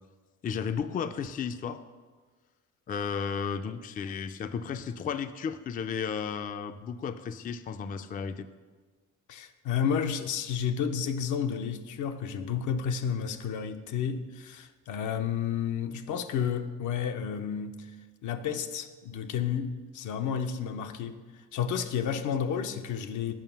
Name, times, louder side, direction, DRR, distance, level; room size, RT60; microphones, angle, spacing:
voice 1, 0.4-1.8 2.9-8.5, left 6 dB, 30° left, 11 dB, 0.3 m, -33 dB
voice 2, 9.3-17.9 18.2-21.2 21.5-23.3, left 7 dB, 75° left, 8 dB, 0.6 m, -31 dB
7.4 x 5.3 x 5.6 m, 1.4 s
cardioid pair, 90°, 30 cm